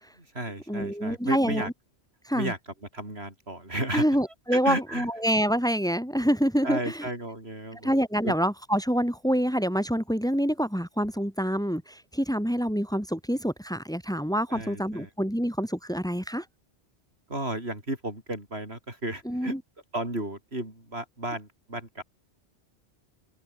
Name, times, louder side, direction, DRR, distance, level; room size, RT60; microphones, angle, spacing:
voice 1, 0.2-1.7 2.3-2.6 2.9-4.0 4.5-5.1 6.6-7.9 8.2-8.3 14.5-15.1 17.3-19.5 19.9-22.0, right 1 dB, 65° right, 6.1 m, -33 dB
voice 2, 0.7-1.7 2.3-2.5 3.9-6.9 7.8-16.4 19.3-19.6, equal, 5° left, 5.5 m, -26 dB
omnidirectional pair, 1.1 m